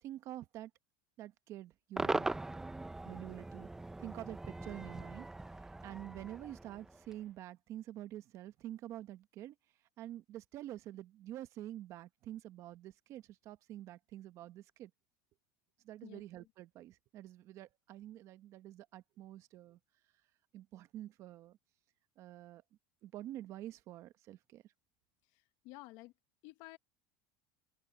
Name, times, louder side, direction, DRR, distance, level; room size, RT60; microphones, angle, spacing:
voice 1, 0.0-0.7 1.2-2.3 3.0-3.7 4.0-5.3 5.8-9.5 10.0-14.9 15.8-19.8 20.5-21.6 22.2-22.6 23.0-24.6, right 13 dB, 40° right, 1.1 m, -47 dB
Cheering / Crowd / Fireworks, 2.0-7.2, right 2 dB, 5° right, 0.6 m, -40 dB
voice 2, 16.0-16.5 25.3-26.1 26.4-26.8, left 20 dB, 60° left, 1.1 m, -53 dB
supercardioid pair, 150°, 7 cm